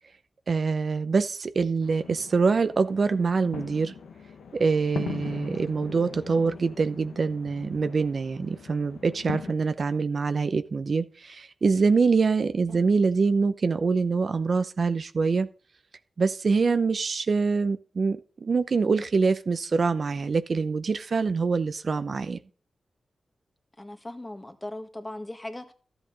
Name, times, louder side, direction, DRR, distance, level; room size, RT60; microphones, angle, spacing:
voice 1, 0.5-3.9 4.5-15.5 16.2-22.4, right 4 dB, 60° right, 0.7 m, -25 dB
sound 1, 1.8-9.5, left 6 dB, 85° left, 1.1 m, -40 dB
voice 2, 23.8-25.7, left 1 dB, 20° left, 1.7 m, -39 dB
12.5 x 8.0 x 3.9 m
cardioid pair, 50°, 0 cm